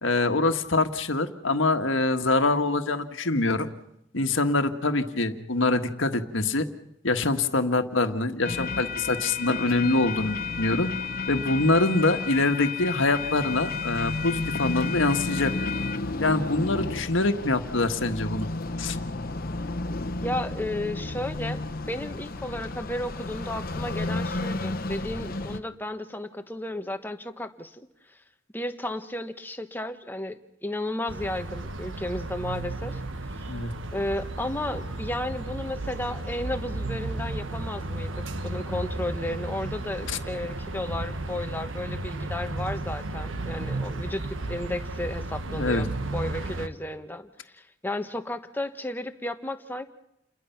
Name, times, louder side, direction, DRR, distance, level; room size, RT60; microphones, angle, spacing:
voice 1, 0.0-3.7 4.1-6.6 7.0-10.9 11.3-15.5 16.2-18.5 18.8-19.0 33.5-33.7 40.1-40.2 45.5-45.9, left 2 dB, 75° left, 7 dB, 1.6 m, -24 dB
sound 1, 8.4-25.6, left 3 dB, 50° left, 1.2 m, -32 dB
voice 2, 20.2-21.6 21.9-27.8 28.5-33.0 33.4-33.5 33.9-49.8, left 1 dB, 10° left, 7 dB, 1.3 m, -33 dB
sound 2, 31.1-46.7, right 2 dB, 75° right, 1.5 m, -34 dB
29.5 x 22.0 x 5.9 m, 0.83 s
head